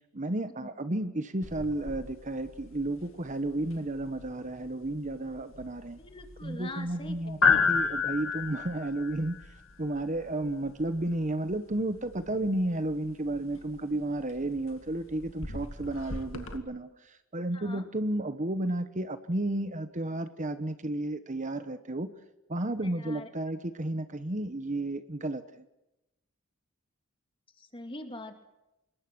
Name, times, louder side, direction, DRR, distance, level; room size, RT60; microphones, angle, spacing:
voice 1, 0.1-6.0 6.4-9.4 9.8-22.1 22.5-25.6, right 1 dB, 35° right, 11 dB, 1.2 m, -32 dB
sound 1, 1.4-16.6, left 5 dB, 65° left, 2.3 m, -34 dB
voice 2, 6.0-7.4 17.5-17.9 22.8-23.3 27.6-28.4, left 1 dB, 25° left, 6 dB, 2.6 m, -43 dB
26.0 x 22.0 x 6.2 m, 0.93 s
head